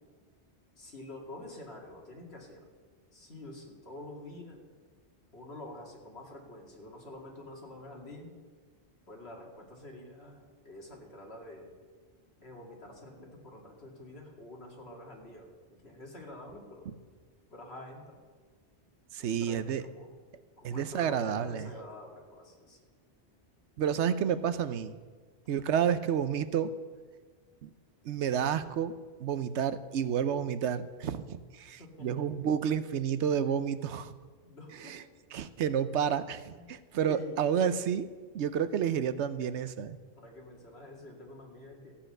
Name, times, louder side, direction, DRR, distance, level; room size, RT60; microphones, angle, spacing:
voice 1, 0.8-2.7 3.1-4.6 5.3-8.4 9.1-11.7 12.4-16.9 17.5-18.2 19.2-20.1 20.6-22.8 25.5-25.6 31.8-32.2 34.4-35.0 36.5-36.7 37.1-37.4 40.2-42.0, left 1 dB, 65° left, 0 dB, 2.7 m, -47 dB
voice 2, 19.1-19.9 20.6-21.7 23.8-25.0 25.5-26.7 27.6-27.7 28.0-28.9 29.2-34.1 34.8-35.0 35.3-38.1 38.3-40.0, right 8 dB, 85° right, 14 dB, 1.0 m, -30 dB
14.5 x 8.7 x 6.5 m, 1.5 s
omnidirectional pair, 1.1 m